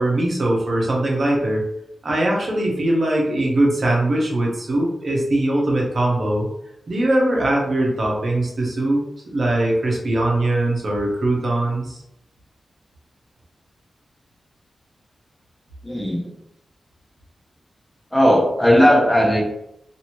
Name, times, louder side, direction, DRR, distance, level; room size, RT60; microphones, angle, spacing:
voice 1, 0.0-1.6 2.0-6.5 6.9-9.0 9.3-12.0, right 1 dB, 50° right, -2 dB, 0.9 m, -21 dB
voice 2, 15.8-16.3 18.1-19.4, equal, 10° left, -1 dB, 0.6 m, -16 dB
2.7 x 2.6 x 2.9 m, 0.80 s
wide cardioid pair, 90°, 0 cm